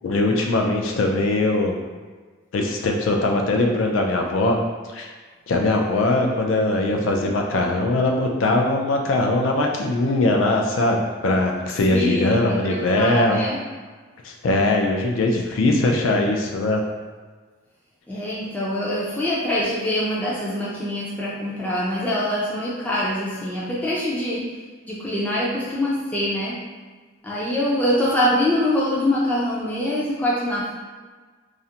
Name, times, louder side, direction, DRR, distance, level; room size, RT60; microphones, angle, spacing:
voice 1, 0.0-1.8 2.5-4.6 4.9-5.1 5.5-11.0 11.2-13.4 14.2-16.8, left 2 dB, 75° left, 2 dB, 0.4 m, -21 dB
voice 2, 11.9-13.6 18.1-24.4 24.9-26.6 27.2-30.7, left 1 dB, 10° left, -7 dB, 0.4 m, -24 dB
2.4 x 2.1 x 2.7 m, 1.4 s
head